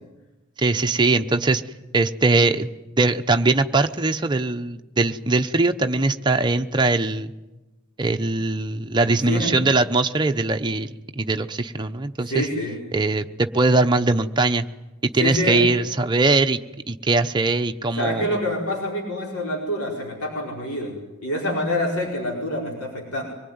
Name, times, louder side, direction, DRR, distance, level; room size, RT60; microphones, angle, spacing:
voice 1, 0.6-1.6 1.9-7.3 8.0-12.5 12.9-14.7 15.0-16.6 16.9-18.2, right 3 dB, 20° right, 6 dB, 0.8 m, -21 dB
voice 2, 9.0-9.6 12.2-12.8 15.2-15.7 17.9-21.0 21.2-23.2, left 1 dB, 85° left, -2 dB, 5.0 m, -26 dB
25.0 x 20.0 x 9.4 m, 1.1 s
head